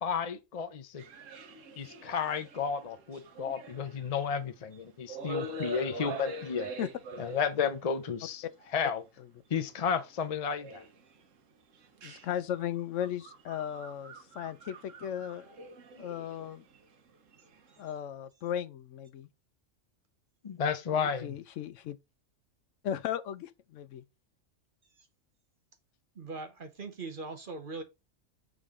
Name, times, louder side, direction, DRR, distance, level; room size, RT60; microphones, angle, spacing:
voice 1, 0.0-1.0 1.8-6.7 7.2-8.4 8.7-9.0 9.5-10.8 20.4-21.4, left 6 dB, 40° left, 0.6 m, -32 dB
sound 1, 1.0-4.8 5.1-7.9 8.6-8.7 9.7-10.0 10.6-11.2 11.7-17.8, right 2 dB, 80° right, 1.4 m, -44 dB
voice 2, 12.0-15.4 16.0-16.6 17.8-19.3 20.9-22.0 22.8-24.0, left 10 dB, 75° left, 0.9 m, -36 dB
voice 3, 26.1-27.8, right 3 dB, 45° right, 1.0 m, -41 dB
7.1 x 3.7 x 3.6 m
omnidirectional pair, 1.3 m